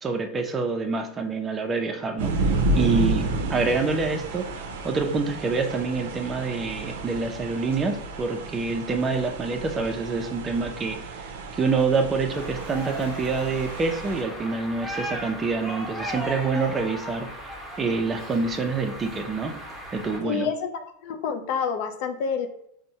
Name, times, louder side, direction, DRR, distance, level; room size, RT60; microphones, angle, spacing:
voice 1, 0.0-4.5 4.8-11.3 11.5-19.6 19.9-20.5, right 4 dB, 20° right, 5 dB, 0.4 m, -27 dB
sound 1, 2.2-14.2, right 2 dB, 80° right, 0.5 m, -31 dB
sound 2, 12.3-20.2, equal, ahead, 0.8 m, -37 dB
voice 2, 20.2-22.5, left 6 dB, 65° left, 6 dB, 0.4 m, -28 dB
4.2 x 2.1 x 2.7 m, 0.73 s
supercardioid pair, 120°, 0 cm